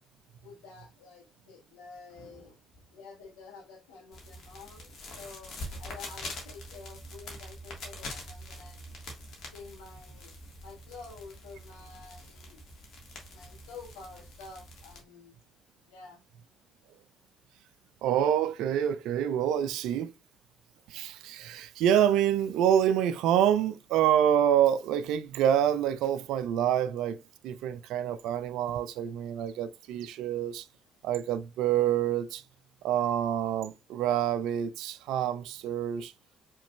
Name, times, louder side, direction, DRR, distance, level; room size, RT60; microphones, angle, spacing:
voice 1, 0.4-8.8 9.5-10.3 10.6-12.6 13.3-15.3 15.9-16.2, left 4 dB, 70° left, 1.4 m, -49 dB
sound 1, 4.1-15.0, left 1 dB, 55° left, 1.4 m, -44 dB
voice 2, 18.0-20.1 20.9-27.2 27.4-30.7 31.0-32.4 32.8-36.1, right 10 dB, 65° right, 0.3 m, -27 dB
4.9 x 3.0 x 2.2 m
figure-of-eight pair, 45°, 0 cm